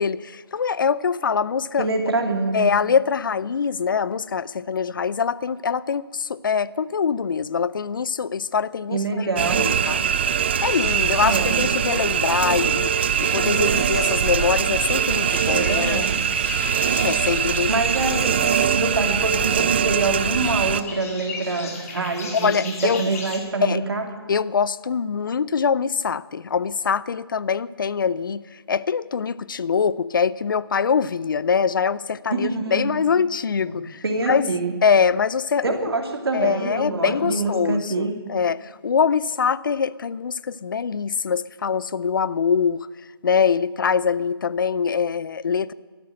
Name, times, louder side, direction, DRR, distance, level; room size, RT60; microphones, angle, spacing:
voice 1, 0.0-1.9 2.5-9.3 9.6-10.1 10.6-16.0 17.0-17.7 22.3-23.1 23.6-23.8 24.3-28.4 28.7-34.4 34.8-35.8 36.3-42.9 43.2-45.7, left 6 dB, 55° left, 20 dB, 0.5 m, -23 dB
voice 2, 1.8-2.7 8.9-9.7 11.2-11.6 15.5-16.2 17.7-18.4 18.8-24.1 32.3-33.0 33.6-33.8 34.0-34.8 35.6-38.2, right 3 dB, 70° right, 4 dB, 2.7 m, -25 dB
sound 1, 9.4-20.8, right 8 dB, 25° right, 0.3 m, -22 dB
sound 2, 10.6-23.4, left 4 dB, 35° left, 2.1 m, -38 dB
13.0 x 10.0 x 7.7 m, 1.5 s
figure-of-eight pair, 155°, 13 cm